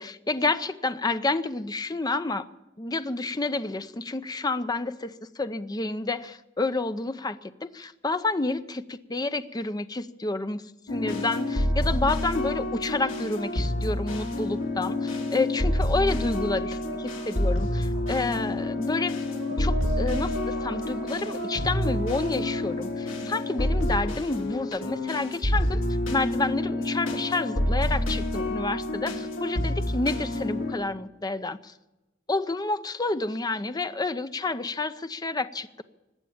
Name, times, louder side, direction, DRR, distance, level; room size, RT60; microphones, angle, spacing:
voice 1, 0.0-2.4 2.8-19.2 19.6-25.8 26.1-31.7 32.3-35.8, left 3 dB, 20° left, 11 dB, 0.6 m, -29 dB
sound 1, 10.9-30.7, left 1 dB, 85° left, 2.8 m, -28 dB
sound 2, 14.6-15.9 16.2-24.0, right 2 dB, 65° right, 6.1 m, -41 dB
19.5 x 8.1 x 8.7 m, 1.0 s
head